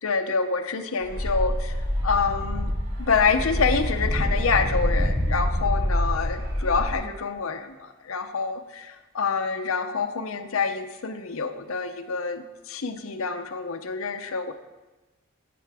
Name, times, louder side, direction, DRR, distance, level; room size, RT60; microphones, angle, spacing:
voice 1, 0.0-1.7 2.0-2.7 3.1-7.7 8.1-8.9 9.1-14.5, left 5 dB, 80° left, 7 dB, 0.7 m, -26 dB
sound 1, 1.0-6.9, equal, 40° right, 2.7 m, -26 dB
13.0 x 7.7 x 3.5 m, 1.1 s
head